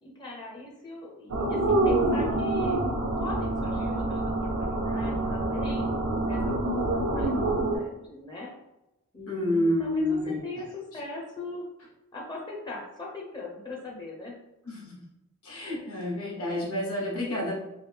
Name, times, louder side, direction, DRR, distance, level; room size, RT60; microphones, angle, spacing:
voice 1, 0.0-2.8 3.2-5.9 6.2-8.5 9.1-11.6 12.1-14.4, left 2 dB, 20° left, -2 dB, 0.5 m, -40 dB
sound 1, 1.3-7.8, right 2 dB, 80° right, 0.5 m, -26 dB
voice 2, 9.3-10.4 14.7-14.9 15.4-17.6, left 1 dB, 75° left, -3 dB, 1.2 m, -28 dB
3.2 x 2.6 x 3.3 m, 0.93 s
head